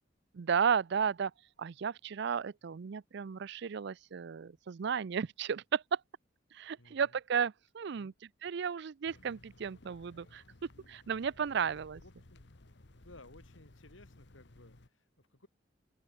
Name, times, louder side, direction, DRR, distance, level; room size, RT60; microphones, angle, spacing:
voice 1, 0.3-1.3 1.6-6.0 6.5-8.1 8.4-10.4 10.9-12.0, right 7 dB, 60° right, 0.4 m, -33 dB
voice 2, 6.8-7.2 7.9-8.1 12.0-12.4 12.9-15.5, left 2 dB, 90° left, 4.5 m, -58 dB
sound 1, 9.1-14.9, left 2 dB, 65° left, 1.5 m, -58 dB
open air
head